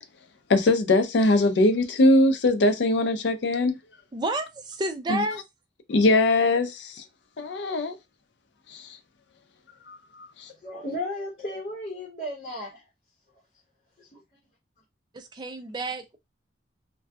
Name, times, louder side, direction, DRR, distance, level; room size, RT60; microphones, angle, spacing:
voice 1, 0.5-3.8 5.1-5.2 5.9-7.0 7.4-8.0 8.7-9.0 9.9-10.5, left 2 dB, 70° left, 0.4 m, -22 dB
voice 2, 4.1-5.4 15.1-16.2, right 2 dB, 25° right, 0.3 m, -30 dB
voice 3, 10.6-12.8 14.0-14.2, left 1 dB, 40° left, 0.9 m, -34 dB
2.6 x 2.2 x 2.3 m
head